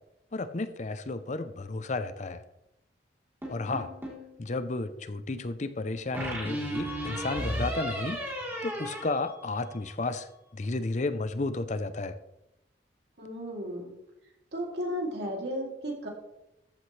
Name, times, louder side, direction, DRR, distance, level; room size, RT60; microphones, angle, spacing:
voice 1, 0.3-2.4 3.5-3.9 4.4-8.2 8.6-12.2, left 2 dB, 40° left, 12 dB, 0.6 m, -32 dB
sound 1, 3.4-4.3 6.1-9.9, equal, 15° right, 3.4 m, -35 dB
voice 2, 13.2-13.9 14.5-16.1, equal, 65° right, -1 dB, 2.9 m, -34 dB
14.0 x 8.8 x 3.2 m, 0.88 s
head